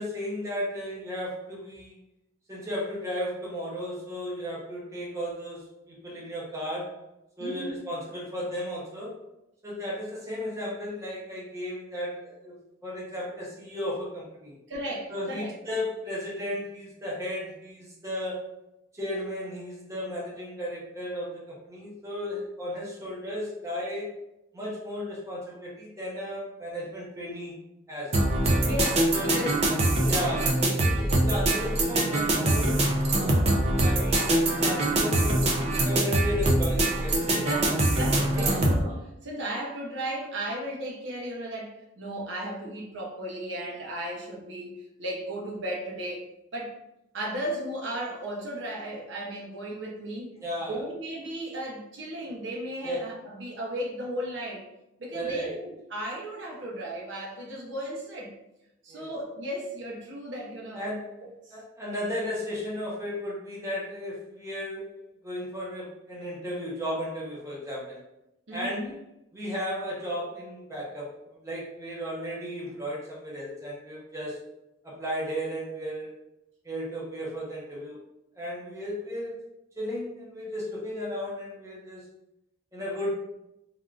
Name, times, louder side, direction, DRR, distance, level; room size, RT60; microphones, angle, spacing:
voice 1, 0.0-2.0 2.5-7.0 7.4-9.2 9.6-12.6 12.8-14.6 15.1-18.4 18.9-24.1 24.5-27.6 27.9-28.2 29.1-29.4 30.1-33.3 33.6-35.5 35.8-37.5 38.3-38.5 50.4-50.8 52.8-53.0 55.1-55.6 58.9-59.1 60.7-61.1 61.5-64.9 65.2-68.0 68.5-68.9 69.3-74.4 74.8-76.1 76.6-78.0 78.3-79.4 79.8-82.0 82.7-83.1, equal, 15° right, -5 dB, 0.8 m, -34 dB
voice 2, 7.4-7.8 14.7-15.5 28.6-29.5 30.0-30.4 37.4-46.3 46.5-46.8 47.1-50.3 50.7-54.6 55.0-58.3 58.8-60.9 61.5-61.6 68.5-68.9, right 1 dB, 70° right, -2 dB, 0.7 m, -35 dB
sound 1, 28.1-38.8, right 1 dB, 35° right, 0.3 m, -24 dB
3.5 x 2.4 x 2.3 m, 0.88 s
head